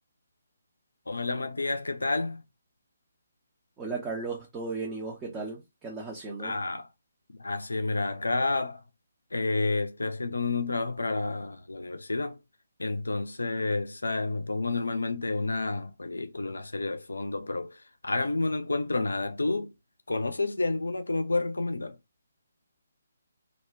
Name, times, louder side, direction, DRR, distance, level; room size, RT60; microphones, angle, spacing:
voice 1, 1.1-2.4 6.4-6.9 7.3-8.8 9.3-12.4 12.8-19.7 20.1-22.0, left 3 dB, 70° left, 0.4 m, -30 dB
voice 2, 3.8-6.6, right 4 dB, 15° right, 0.6 m, -35 dB
2.4 x 2.1 x 3.4 m
figure-of-eight pair, 140°, 0 cm